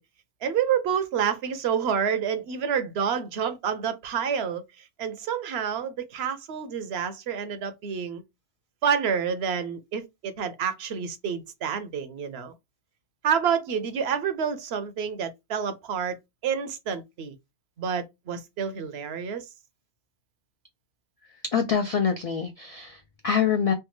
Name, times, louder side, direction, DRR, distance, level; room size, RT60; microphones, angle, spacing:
voice 1, 0.4-8.2 8.8-12.5 13.2-16.2 16.4-17.4 17.8-19.5, right 7 dB, 70° right, 0.8 m, -28 dB
voice 2, 21.5-23.7, left 7 dB, 55° left, 0.4 m, -25 dB
3.4 x 2.2 x 3.0 m
omnidirectional pair, 1.1 m